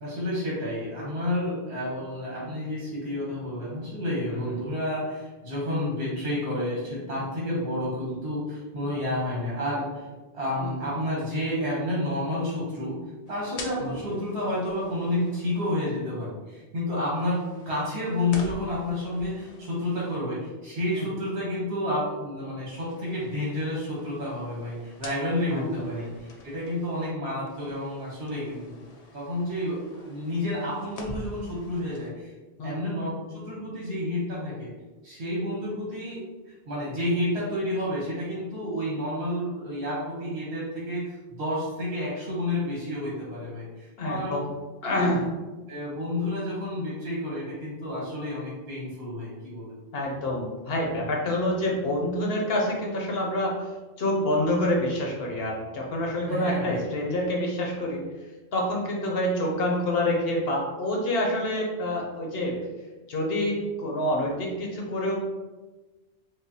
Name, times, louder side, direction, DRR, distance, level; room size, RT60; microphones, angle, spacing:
voice 1, 0.0-10.1 10.3-13.0 13.3-28.8 29.1-32.3 32.6-34.7 35.0-44.4 44.9-45.1 45.7-49.7 56.3-56.8, left 1 dB, 75° right, -6 dB, 1.2 m, -30 dB
sound 1, 13.3-15.7 17.2-20.2 22.7-27.1 27.5-32.1, left 2 dB, 55° left, 0.4 m, -46 dB
voice 2, 25.5-26.1 32.6-32.7 44.0-44.5 44.8-45.3 49.9-58.0 58.5-62.7 63.1-65.2, left 1 dB, 70° left, -1 dB, 0.8 m, -27 dB
4.8 x 2.0 x 2.7 m, 1.2 s
omnidirectional pair, 1.1 m